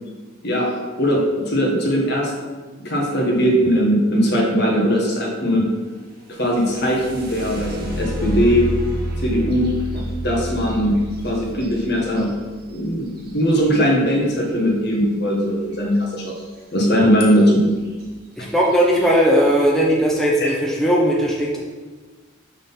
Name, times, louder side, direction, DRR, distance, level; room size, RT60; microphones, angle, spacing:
voice 1, 1.0-2.3 2.8-5.7 6.3-8.7 9.2-11.0 11.2-12.3 12.7-16.3 16.7-17.7 18.4-18.5 20.4-20.5, equal, 55° left, -1 dB, 1.5 m, -19 dB
sound 1, 6.4-14.2 16.3-16.4 16.8-17.4 18.0-18.1 18.6-19.0, equal, 50° right, 1.3 m, -29 dB
voice 2, 18.4-21.6, equal, ahead, -4 dB, 0.8 m, -18 dB
6.2 x 3.9 x 5.5 m, 1.3 s
head